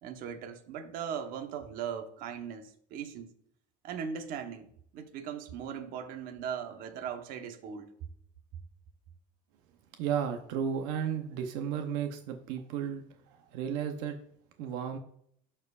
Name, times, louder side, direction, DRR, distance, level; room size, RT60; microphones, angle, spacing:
voice 1, 0.0-3.3 3.8-4.7 4.9-7.9, right 7 dB, 60° right, 1.0 m, -39 dB
voice 2, 10.0-14.2 14.6-15.0, right 8 dB, 85° right, 0.7 m, -34 dB
12.0 x 4.5 x 2.4 m
cardioid pair, 145°, 17 cm